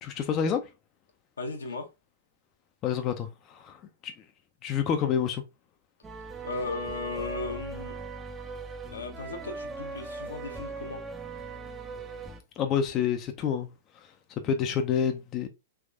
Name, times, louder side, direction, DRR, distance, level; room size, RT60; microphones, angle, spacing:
voice 1, 0.0-0.7 2.8-4.1 4.6-5.4 12.6-13.7 14.4-15.5, left 8 dB, 35° left, 0.4 m, -28 dB
voice 2, 1.4-1.9 6.4-8.0 8.9-11.0, left 3 dB, 80° left, 0.8 m, -36 dB
sound 1, 6.0-12.4, right 4 dB, 15° right, 0.5 m, -40 dB
3.4 x 3.1 x 2.4 m
hypercardioid pair, 105°, 0 cm